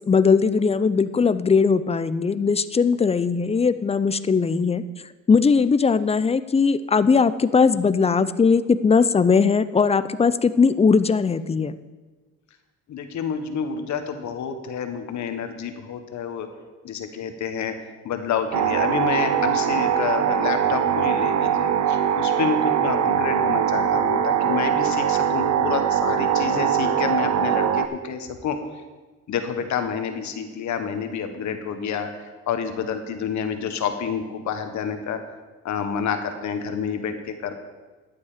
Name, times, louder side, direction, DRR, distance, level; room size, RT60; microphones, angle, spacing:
voice 1, 0.0-4.8 5.3-11.8, left 5 dB, 20° left, 14 dB, 0.5 m, -19 dB
voice 2, 12.9-16.5 16.8-17.7 18.0-28.6 29.3-32.1 32.5-35.2 35.6-37.5, left 7 dB, 70° left, 7 dB, 1.3 m, -28 dB
sound 1, 18.5-27.9, right 8 dB, 65° right, 0.7 m, -22 dB
11.5 x 8.2 x 5.0 m, 1.3 s
cardioid pair, 90°, 30 cm